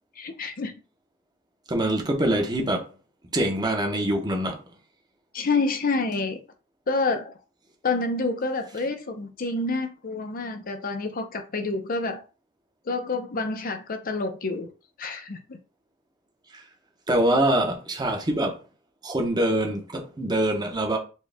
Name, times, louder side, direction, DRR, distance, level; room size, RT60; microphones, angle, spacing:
voice 1, 0.2-0.7 5.3-6.4 6.9-7.3 7.8-12.2 12.9-14.7 15.0-15.6, left 3 dB, 45° left, 0.6 m, -28 dB
voice 2, 1.7-2.8 3.3-4.6 16.5-16.6 17.1-18.6 19.0-21.0, right 1 dB, 20° right, 0.9 m, -24 dB
4.3 x 2.3 x 3.4 m
head